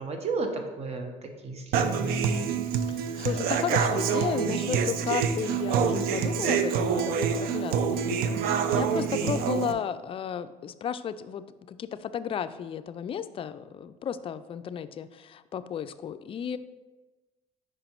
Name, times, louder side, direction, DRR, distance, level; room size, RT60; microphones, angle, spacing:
voice 1, 0.0-2.4, right 3 dB, 40° right, 5 dB, 1.0 m, -33 dB
Human voice / Acoustic guitar, 1.7-9.7, right 7 dB, 70° right, 0.5 m, -26 dB
voice 2, 2.9-16.6, left 8 dB, 35° left, 12 dB, 0.4 m, -34 dB
5.1 x 4.9 x 4.4 m, 1.2 s
cardioid pair, 95°, 16 cm